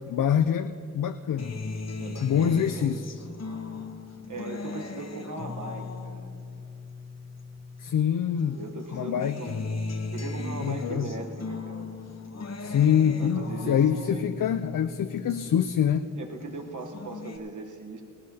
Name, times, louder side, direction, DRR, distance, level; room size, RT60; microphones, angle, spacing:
voice 1, 0.0-1.6 2.2-3.1 7.8-8.6 8.9-9.4 10.6-11.1 12.6-16.1, left 8 dB, 90° left, 9 dB, 0.5 m, -25 dB
Acoustic guitar, 1.4-8.0 8.4-16.0 16.4-17.4, left 3 dB, 55° left, 1.0 m, -37 dB
voice 2, 2.0-3.0 4.3-6.3 8.6-9.7 10.1-11.9 13.2-14.3 16.1-18.0, right 3 dB, 75° right, 4 dB, 1.1 m, -39 dB
19.0 x 17.5 x 2.8 m, 2.5 s
wide cardioid pair, 95°, 31 cm